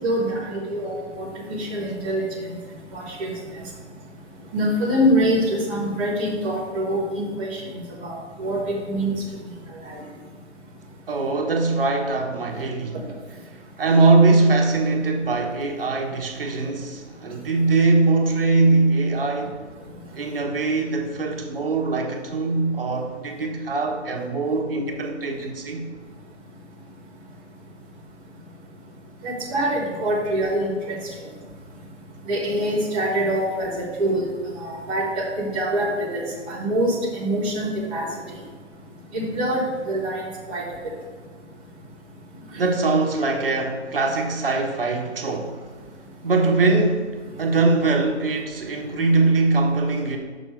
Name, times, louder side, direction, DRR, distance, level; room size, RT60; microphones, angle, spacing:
voice 1, 0.0-2.2 2.9-3.3 4.5-7.6 8.0-9.1 9.8-10.0 29.2-31.0 32.3-34.2 34.6-38.1 39.1-40.2 40.5-40.7 42.5-42.6, equal, 10° right, -9 dB, 0.6 m, -24 dB
voice 2, 11.1-13.0 13.8-19.6 20.1-25.9 42.6-45.6 46.2-47.1 47.4-50.2, right 3 dB, 50° right, 2 dB, 1.2 m, -21 dB
6.3 x 6.3 x 4.4 m, 1.5 s
figure-of-eight pair, 145°, 35 cm